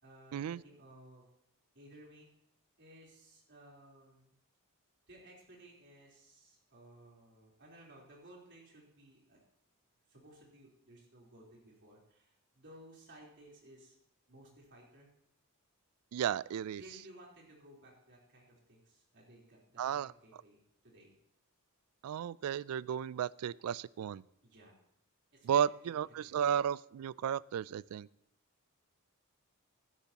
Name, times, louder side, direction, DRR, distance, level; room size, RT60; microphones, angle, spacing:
voice 1, 0.0-1.2 1.7-2.3 2.8-4.4 5.1-9.4 10.1-14.0 14.3-15.1 16.8-21.1 24.4-24.7 25.3-26.4, right 1 dB, 55° right, -2 dB, 3.7 m, -58 dB
voice 2, 16.1-16.8 19.8-20.1 22.0-24.2 25.4-28.1, right 8 dB, 70° right, 22 dB, 0.3 m, -34 dB
16.5 x 12.0 x 2.9 m, 0.79 s
head